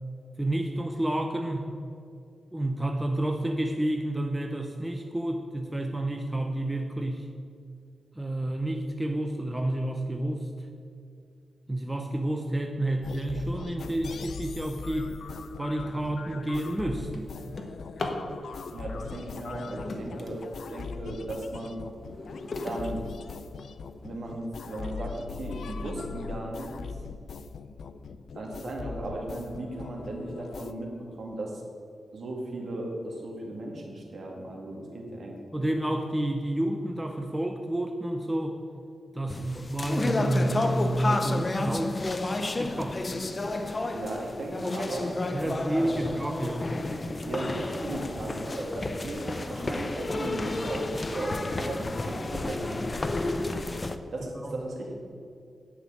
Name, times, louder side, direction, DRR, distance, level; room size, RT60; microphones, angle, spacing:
voice 1, 0.4-1.7 2.5-7.3 8.2-10.5 11.7-15.1 15.6-17.3 35.5-38.6 39.1-42.0 42.6-43.0 45.3-46.7 54.4-54.6, right 1 dB, 10° right, 4 dB, 0.7 m, -30 dB
sound 1, 13.0-30.7, left 5 dB, 70° left, 0.5 m, -41 dB
Drawer open or close, 15.6-15.8 16.3-18.3 19.4-21.0 21.5-23.9 24.6-24.7 25.2-25.3 25.6-26.0, left 2 dB, 45° left, 1.3 m, -40 dB
voice 2, 18.7-20.4 20.7-21.8 22.6-23.0 24.0-26.7 28.3-31.6 32.1-35.6 43.9-46.1 47.2-53.2 54.1-55.0, right 1 dB, 55° right, -1 dB, 2.3 m, -36 dB
sound 2, 39.3-54.0, left 2 dB, 25° left, 0.6 m, -31 dB
9.9 x 6.2 x 8.7 m, 2.4 s
wide cardioid pair, 120°, 0 cm